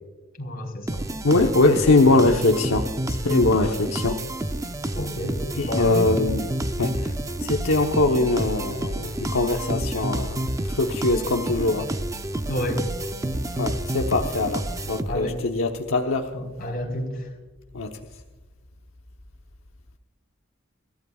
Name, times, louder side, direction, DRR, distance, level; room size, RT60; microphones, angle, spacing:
voice 1, 0.4-1.0 4.9-6.2 12.5-12.9 15.1-15.4 16.3-17.2, left 1 dB, 45° left, 1 dB, 4.3 m, -30 dB
sound 1, 0.9-15.4, right 1 dB, 15° right, 0.6 m, -29 dB
voice 2, 1.2-4.2 5.6-6.5 6.8-6.9 7.4-10.4 10.7-11.9 13.6-16.3 17.7-17.9, left 2 dB, 75° left, 2 dB, 1.0 m, -22 dB
28.0 x 15.5 x 2.4 m, 1.2 s
head